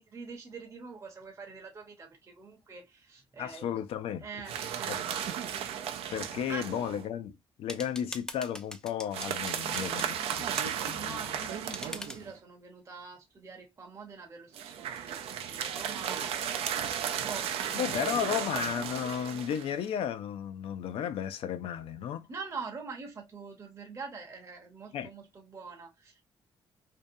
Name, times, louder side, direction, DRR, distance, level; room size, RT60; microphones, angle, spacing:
voice 1, 0.0-3.7 4.2-5.4 6.5-6.8 10.9-16.8 17.2-18.5 22.3-26.2, right 4 dB, 30° right, 0.7 m, -45 dB
voice 2, 3.4-4.3 4.9-5.0 6.1-11.5 17.7-22.3 24.9-25.1, left 9 dB, 80° left, 0.4 m, -34 dB
sound 1, 4.5-7.0 9.1-12.4 14.5-19.9, right 9 dB, 90° right, 0.4 m, -35 dB
sound 2, 7.7-10.1 10.6-10.7 11.7-12.2, left 1 dB, 5° left, 0.4 m, -42 dB
2.6 x 2.2 x 2.6 m
cardioid pair, 125°, 10 cm